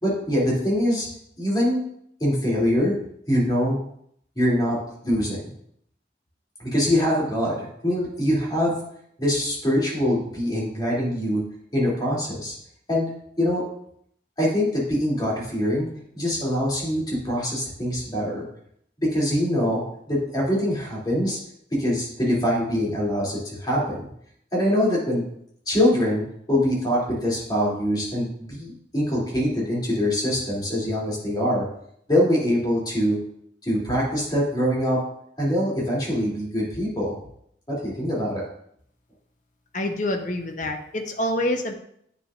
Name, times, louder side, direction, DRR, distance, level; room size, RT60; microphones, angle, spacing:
voice 1, 0.0-1.1 1.4-1.8 2.2-2.9 3.3-3.8 4.4-5.4 6.6-8.8 9.2-11.4 11.7-12.5 12.9-13.1 13.4-13.6 14.4-15.9 16.1-18.4 19.0-21.4 21.7-24.0 24.5-25.2 25.7-26.2 26.5-31.7 32.1-33.2 33.6-35.0 35.4-37.1 37.7-38.4, equal, 25° left, -5 dB, 2.9 m, -23 dB
voice 2, 39.7-41.8, left 1 dB, 45° left, 4 dB, 0.8 m, -26 dB
9.2 x 7.2 x 2.5 m, 0.70 s
head